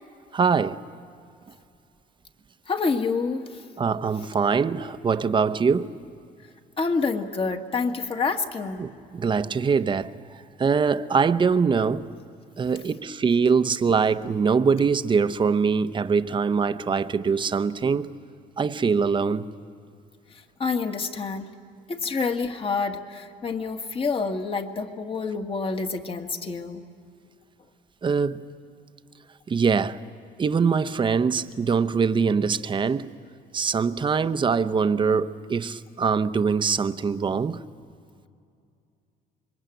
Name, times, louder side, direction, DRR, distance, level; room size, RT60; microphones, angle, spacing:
voice 1, 0.3-0.8 3.8-5.9 8.8-10.1 10.6-12.1 12.6-18.1 18.6-19.5 28.0-28.4 29.5-30.0 30.4-33.1 33.5-37.6, right 5 dB, 30° right, 0.8 m, -23 dB
voice 2, 2.7-3.4 6.8-8.8 20.6-21.5 21.9-26.8, left 4 dB, 30° left, 1.8 m, -27 dB
26.0 x 22.5 x 9.1 m
cardioid pair, 110°, 17 cm